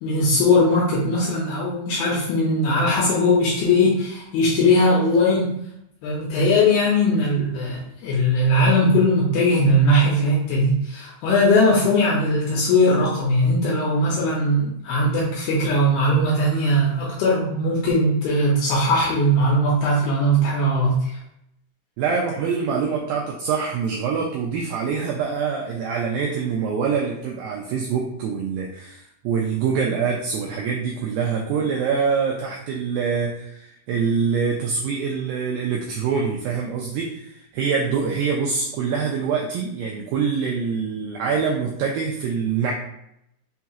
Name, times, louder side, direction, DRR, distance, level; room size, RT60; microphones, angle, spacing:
voice 1, 0.0-5.5 6.0-21.2, left 1 dB, 80° left, -5 dB, 2.6 m, -19 dB
voice 2, 22.0-42.7, right 6 dB, 85° right, -1 dB, 2.1 m, -25 dB
6.1 x 2.8 x 2.4 m, 0.77 s
omnidirectional pair, 4.6 m